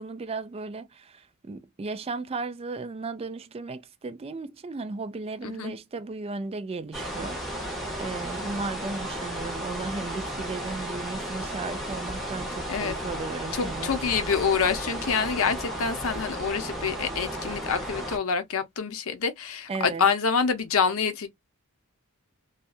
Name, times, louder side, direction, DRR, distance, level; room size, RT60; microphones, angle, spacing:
voice 1, 0.0-14.0 19.7-20.1, right 3 dB, 25° right, 0.3 m, -35 dB
sound 1, 6.9-18.2, equal, ahead, 0.8 m, -34 dB
voice 2, 13.5-21.3, left 5 dB, 65° left, 0.6 m, -26 dB
2.7 x 2.3 x 2.3 m
head